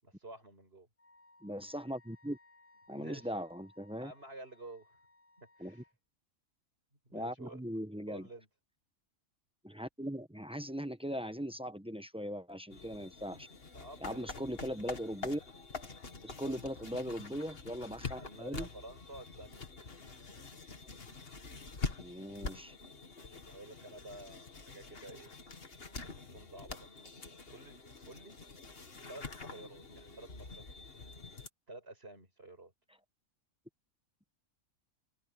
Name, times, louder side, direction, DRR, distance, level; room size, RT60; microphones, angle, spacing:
voice 1, 0.0-0.9 2.9-3.3 4.0-5.0 5.4-5.8 7.0-7.6 8.1-8.5 13.7-14.3 16.4-16.6 18.2-19.7 23.5-25.3 26.0-26.9 27.5-27.8 28.1-28.4 29.1-30.9 31.7-32.7, right 2 dB, 45° right, 6.1 m, -51 dB
Wind instrument woodwind instrument, 1.0-5.9, left 2 dB, 25° left, 7.5 m, -64 dB
voice 2, 1.4-2.4 2.9-4.1 5.6-5.8 7.1-8.3 9.6-13.5 14.0-15.4 16.2-18.7 22.0-22.7, equal, 5° right, 0.8 m, -39 dB
sound 1, 12.7-31.5, left 4 dB, 45° left, 2.0 m, -46 dB
open air
omnidirectional pair, 1.4 m